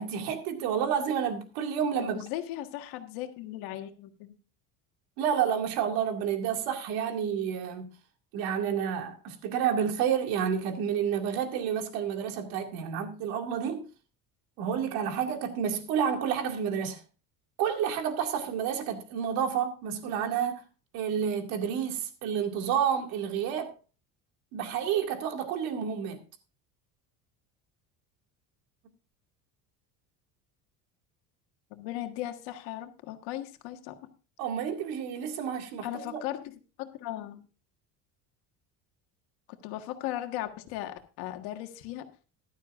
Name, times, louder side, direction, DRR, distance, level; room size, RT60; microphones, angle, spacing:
voice 1, 0.0-2.2 5.2-7.9 8.3-13.8 14.6-17.0 17.6-20.6 20.9-23.7 24.5-26.2 34.4-36.2, right 8 dB, 80° right, 2.3 m, -30 dB
voice 2, 2.0-4.4 31.7-34.1 35.8-37.5 39.5-42.1, left 13 dB, 85° left, 1.7 m, -37 dB
15.0 x 12.0 x 2.5 m
cardioid pair, 155°, 36 cm